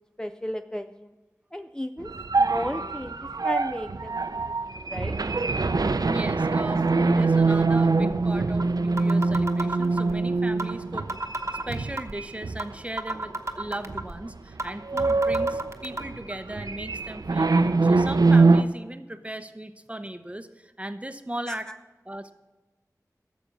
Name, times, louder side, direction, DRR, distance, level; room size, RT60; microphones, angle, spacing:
voice 1, 0.2-1.1 1.5-2.1 2.4-5.2 21.5-21.7, equal, 10° left, 8 dB, 0.5 m, -34 dB
sound 1, 2.0-12.7 13.1-13.3 13.9-14.3 14.5-18.6, right 3 dB, 80° right, 0.5 m, -24 dB
voice 2, 6.0-11.1 11.7-21.7 22.0-22.3, right 1 dB, 20° right, 10 dB, 0.8 m, -37 dB
sound 2, 8.1-8.2 8.6-8.7 9.0-10.1 10.6-10.7 11.0-12.1 12.6-12.7 13.0-14.1 14.6-14.7 15.0-16.0, right 2 dB, 45° right, 1.0 m, -30 dB
12.5 x 7.3 x 6.8 m, 1.2 s
wide cardioid pair, 40°, 6 cm